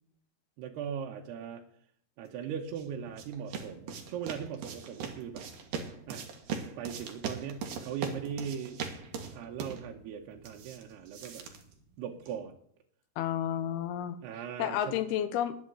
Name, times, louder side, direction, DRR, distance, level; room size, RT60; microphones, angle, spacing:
voice 1, 0.6-1.6 2.2-5.5 6.1-6.3 6.8-8.8 9.3-11.4 12.0-12.6 14.2-15.0, right 8 dB, 80° right, 1 dB, 3.1 m, -39 dB
sound 1, 2.4-12.4, right 6 dB, 60° right, 3.0 m, -41 dB
voice 2, 13.2-14.2 14.6-15.6, left 10 dB, 80° left, 12 dB, 2.9 m, -31 dB
11.0 x 8.8 x 8.0 m, 0.66 s
omnidirectional pair, 4.7 m